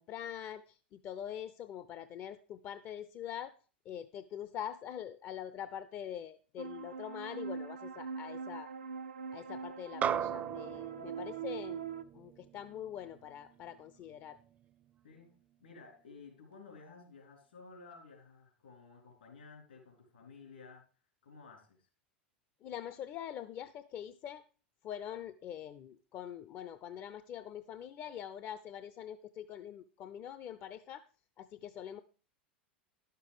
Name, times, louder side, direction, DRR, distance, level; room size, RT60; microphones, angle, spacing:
voice 1, 0.0-3.5 3.8-8.7 9.3-11.8 12.1-14.4 22.6-24.4 24.8-31.0 31.4-32.0, left 10 dB, 40° left, 13 dB, 0.5 m, -44 dB
sound 1, 6.6-12.0, right 6 dB, 75° right, 0.5 m, -42 dB
sound 2, 10.0-14.6, right 8 dB, 25° right, 0.5 m, -39 dB
voice 2, 15.6-20.9 21.2-21.9, left 4 dB, 75° left, 2 dB, 3.7 m, -54 dB
11.0 x 6.8 x 4.8 m, 0.37 s
figure-of-eight pair, 85°, 6 cm